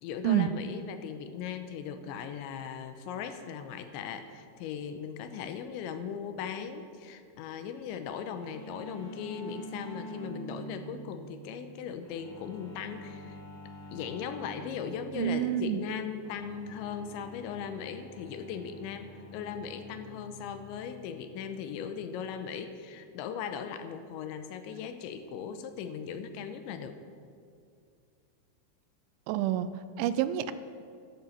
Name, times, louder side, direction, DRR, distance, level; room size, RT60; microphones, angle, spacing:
voice 1, 0.0-13.4 13.9-27.0, left 7 dB, 85° left, 8 dB, 3.0 m, -38 dB
cello tuning, 8.2-22.7, equal, 40° left, 2.3 m, -47 dB
voice 2, 15.2-15.8 29.3-29.7 30.0-30.5, right 11 dB, 85° right, 13 dB, 3.0 m, -27 dB
12.0 x 12.0 x 7.3 m, 2.3 s
omnidirectional pair, 5.5 m